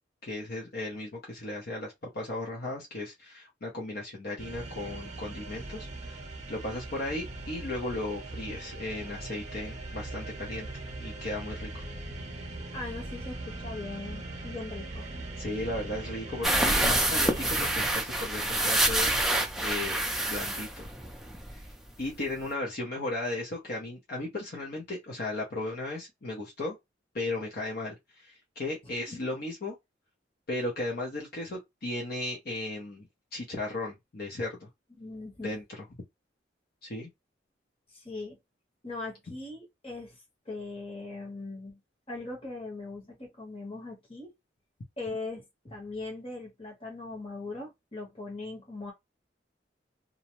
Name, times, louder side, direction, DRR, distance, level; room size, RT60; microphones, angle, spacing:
voice 1, 0.2-6.2 6.5-11.8 15.4-20.9 22.0-26.8 27.1-29.7 30.5-33.1 33.3-34.7 35.4-35.9 36.8-37.1, left 2 dB, 55° left, 0.7 m, -36 dB
sound 1, 4.4-17.9, right 2 dB, 40° right, 0.7 m, -40 dB
voice 2, 12.7-15.0 29.1-29.2 35.0-35.5 37.9-38.4 38.8-40.2 40.5-41.8 42.1-44.3 45.0-48.9, left 3 dB, 30° left, 1.1 m, -40 dB
sound 2, 16.4-21.7 22.0-22.1 22.4-22.5, right 1 dB, ahead, 0.3 m, -27 dB
2.5 x 2.0 x 2.9 m
head